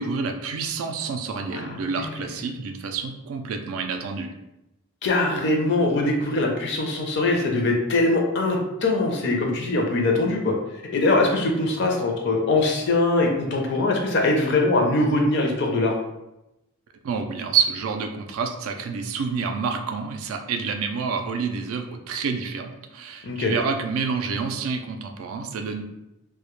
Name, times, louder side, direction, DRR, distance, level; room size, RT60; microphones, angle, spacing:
voice 1, 0.0-4.3 17.0-25.8, right 5 dB, 70° right, 5 dB, 0.3 m, -28 dB
voice 2, 1.5-2.1 5.0-15.9 23.2-23.5, left 2 dB, 50° left, 1 dB, 0.4 m, -22 dB
2.1 x 2.0 x 2.9 m, 0.92 s
head